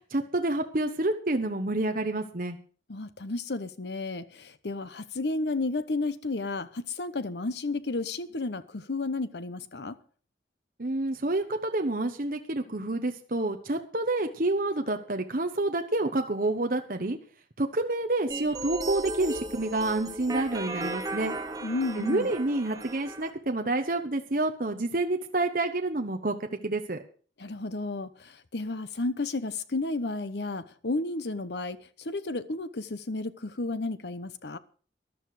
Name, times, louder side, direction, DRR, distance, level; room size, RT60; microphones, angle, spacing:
voice 1, 0.1-2.6 10.8-17.2 17.6-21.3 22.0-27.0, right 2 dB, 50° right, 1.1 m, -28 dB
voice 2, 2.9-10.0 21.6-22.3 27.4-34.6, left 3 dB, 70° left, 0.9 m, -32 dB
sound 1, 18.3-23.3, right 2 dB, 20° right, 1.2 m, -36 dB
13.5 x 11.5 x 4.9 m
head